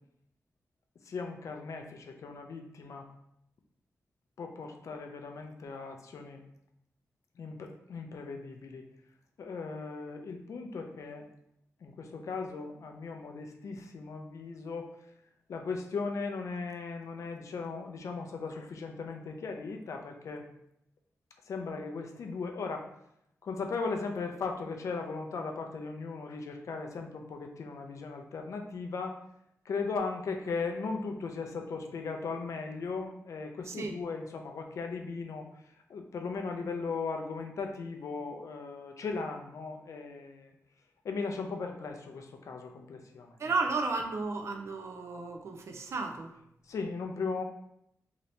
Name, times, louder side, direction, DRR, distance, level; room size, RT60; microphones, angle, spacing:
voice 1, 1.1-3.1 4.4-6.4 7.4-8.8 9.4-11.3 11.8-14.9 15.5-20.4 21.5-22.9 23.4-29.2 29.7-35.5 35.9-40.5 41.0-43.3 46.7-47.4, left 4 dB, 70° left, 4 dB, 0.4 m, -37 dB
voice 2, 33.6-33.9 43.4-46.3, right 3 dB, 60° right, 4 dB, 0.4 m, -33 dB
2.8 x 2.7 x 3.2 m, 0.77 s
wide cardioid pair, 155°, 5 cm